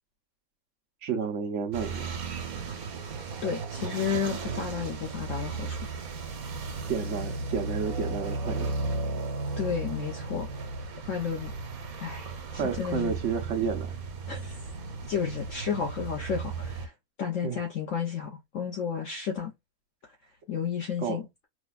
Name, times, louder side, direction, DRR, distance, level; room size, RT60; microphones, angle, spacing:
voice 1, 1.0-2.1 6.9-8.7 12.5-14.0 17.4-17.6 21.0-21.2, right 6 dB, 60° right, 1.0 m, -31 dB
sound 1, 1.7-16.9, right 3 dB, 75° right, 1.4 m, -35 dB
voice 2, 3.4-5.8 9.6-10.5 11.1-11.5 12.0-13.1 14.3-14.6 15.1-16.9 17.2-19.5 20.5-21.2, left 7 dB, 60° left, 1.1 m, -32 dB
5.0 x 2.2 x 2.3 m
omnidirectional pair, 1.6 m